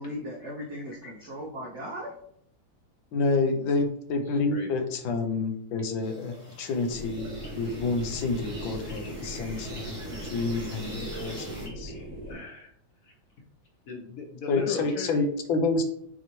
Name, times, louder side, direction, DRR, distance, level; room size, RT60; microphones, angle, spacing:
voice 1, 0.0-2.2, equal, 70° right, -1 dB, 0.6 m, -37 dB
voice 2, 3.1-11.9 14.5-15.8, left 3 dB, 75° left, 5 dB, 1.4 m, -28 dB
voice 3, 4.3-4.8 12.3-12.7 13.0-13.1 13.9-15.3, left 4 dB, 60° left, 1 dB, 1.0 m, -37 dB
sound 1, 6.0-11.7, right 1 dB, 25° right, 1.1 m, -44 dB
sound 2, 6.9-12.3, right 1 dB, 25° left, 1.2 m, -39 dB
sound 3, 7.3-12.7, right 4 dB, 90° right, 1.8 m, -50 dB
6.3 x 2.8 x 3.0 m, 0.71 s
omnidirectional pair, 2.2 m